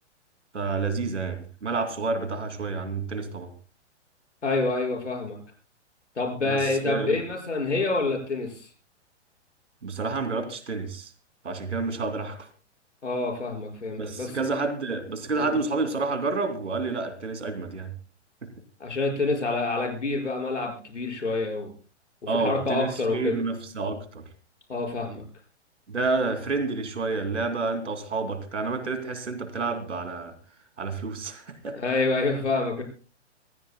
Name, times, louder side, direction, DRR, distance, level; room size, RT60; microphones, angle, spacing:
voice 1, 0.5-3.5 6.5-7.2 9.8-11.1 11.4-12.5 14.0-17.9 18.4-18.5 22.3-24.2 25.9-30.3 30.8-31.8, right 3 dB, 75° right, 2.9 m, -29 dB
voice 2, 4.4-5.4 6.2-8.7 13.0-14.4 15.4-15.5 18.8-21.7 22.3-23.4 24.7-25.2 31.7-32.8, left 3 dB, 80° left, 5.7 m, -27 dB
25.5 x 15.5 x 2.3 m
figure-of-eight pair, 110°, 35 cm